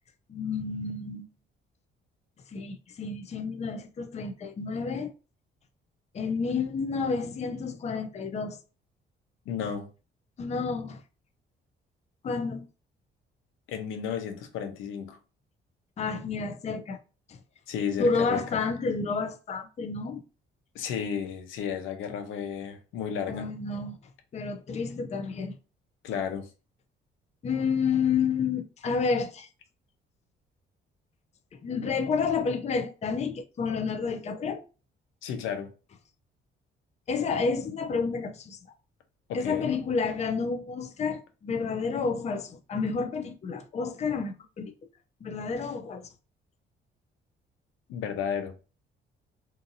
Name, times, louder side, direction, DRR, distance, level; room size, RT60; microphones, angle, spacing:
voice 1, 0.3-1.3 2.5-5.1 6.1-8.6 10.4-11.0 12.2-12.6 16.0-17.0 17.3-17.4 18.0-20.2 23.3-24.0 24.3-25.6 27.4-29.5 31.5-34.6 37.1-38.6 39.3-44.7 45.2-46.1, left 5 dB, 35° left, 0.4 m, -30 dB
voice 2, 9.5-9.9 13.7-15.2 17.7-18.6 20.7-23.5 26.0-26.5 35.2-35.7 39.3-39.7 47.9-48.5, left 7 dB, 90° left, 0.6 m, -33 dB
2.6 x 2.6 x 2.6 m
cardioid pair, 90°, 20 cm